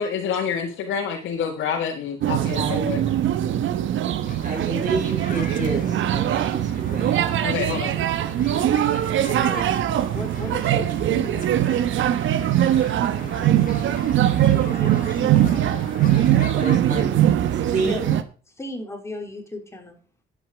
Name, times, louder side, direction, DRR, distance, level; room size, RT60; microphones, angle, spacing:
voice 1, 0.0-3.0 7.4-7.9, left 7 dB, 80° left, 0 dB, 2.0 m, -27 dB
sound 1, 2.2-18.2, right 11 dB, 75° right, 1.1 m, -21 dB
voice 2, 2.6-2.9 4.4-7.3 9.3-9.6 10.4-10.9 13.2-13.5 16.5-17.1 17.7-18.2, right 3 dB, 40° right, -1 dB, 5.3 m, -29 dB
sound 2, 4.3-16.8, left 6 dB, 45° left, 1.6 m, -42 dB
voice 3, 10.1-11.5 14.5-15.5 17.8-18.0 18.6-20.0, left 1 dB, 15° left, 3 dB, 3.8 m, -35 dB
11.5 x 8.7 x 4.9 m, 0.37 s
cardioid pair, 90°, 20 cm